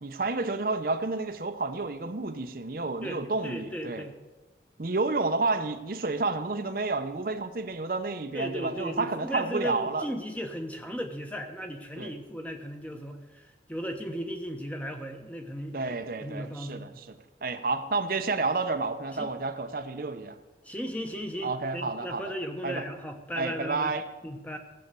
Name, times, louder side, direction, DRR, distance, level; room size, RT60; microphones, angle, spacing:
voice 1, 0.0-4.0 4.8-10.1 12.0-12.1 15.7-17.1 17.4-20.4 21.4-22.2 22.6-22.8 23.4-24.1, right 3 dB, 50° right, 8 dB, 0.7 m, -30 dB
voice 2, 3.0-4.2 8.3-17.1 19.2-19.3 20.6-23.9 24.2-24.6, equal, 10° left, 4 dB, 1.0 m, -36 dB
15.5 x 7.9 x 6.8 m, 1.2 s
head